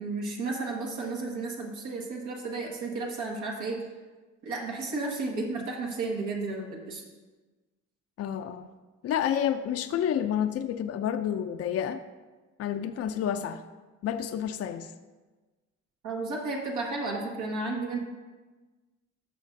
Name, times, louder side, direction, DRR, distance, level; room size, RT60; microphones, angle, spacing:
voice 1, 0.0-3.8 4.4-7.0 16.0-18.0, right 3 dB, 75° right, -1 dB, 1.6 m, -33 dB
voice 2, 8.2-8.7 9.0-12.0 12.6-13.6 14.0-14.9, left 9 dB, 55° left, 9 dB, 0.5 m, -29 dB
12.5 x 6.4 x 2.6 m, 1.3 s
cardioid pair, 90°, 30 cm